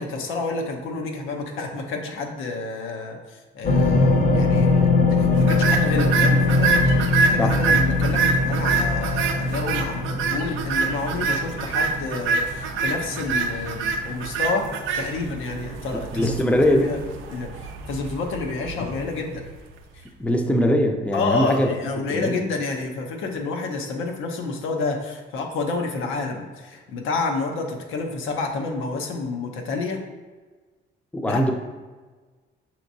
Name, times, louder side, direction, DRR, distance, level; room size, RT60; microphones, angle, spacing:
voice 1, 0.0-6.7 7.0-17.0 17.3-19.4 19.9-20.1 21.1-30.0 31.2-31.4, left 3 dB, 90° left, 2 dB, 0.6 m, -29 dB
sound 1, 3.6-12.9 13.5-13.6, left 2 dB, 45° left, 0.6 m, -21 dB
sound 2, 5.4-19.7, right 4 dB, 85° right, 0.4 m, -26 dB
voice 2, 16.1-16.9 20.2-21.7 22.1-22.4 31.1-31.5, equal, 5° left, 4 dB, 0.4 m, -21 dB
5.8 x 2.9 x 2.6 m, 1.4 s
cardioid pair, 90°, 20 cm